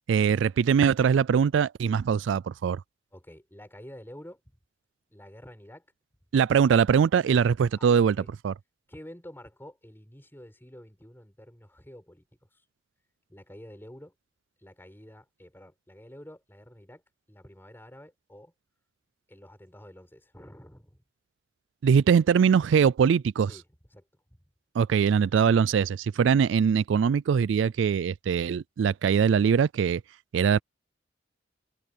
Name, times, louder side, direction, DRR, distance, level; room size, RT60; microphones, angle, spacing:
voice 1, 0.1-2.8 6.3-8.2 8.4-8.5 21.8-23.5 24.7-30.0 30.3-30.6, right 7 dB, 75° right, 0.3 m, -22 dB
voice 2, 3.1-4.6 5.1-5.9 7.8-8.3 8.9-12.3 12.5-12.6 13.3-14.1 14.6-17.0 17.3-18.5 19.3-21.0 23.5-23.6 23.9-24.4, equal, 10° left, 6.1 m, -49 dB
head